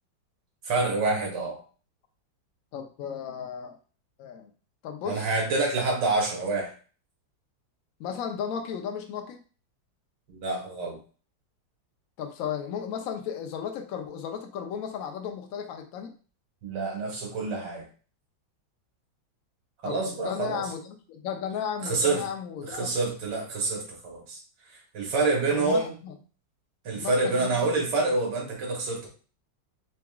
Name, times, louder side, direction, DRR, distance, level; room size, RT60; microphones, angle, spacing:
voice 1, 0.6-1.6 5.0-6.7 10.3-11.0 16.6-17.9 19.8-20.7 21.8-22.2 22.6-24.4 24.9-25.9 26.9-29.1, right 3 dB, 65° right, 0 dB, 1.7 m, -27 dB
voice 2, 2.7-3.8 4.2-4.5 4.8-5.3 8.0-9.4 12.2-16.1 19.8-20.0 20.2-22.9 25.5-26.1 26.9-27.7, left 8 dB, 80° left, 5 dB, 0.7 m, -35 dB
3.9 x 3.5 x 2.3 m, 0.39 s
omnidirectional pair, 2.1 m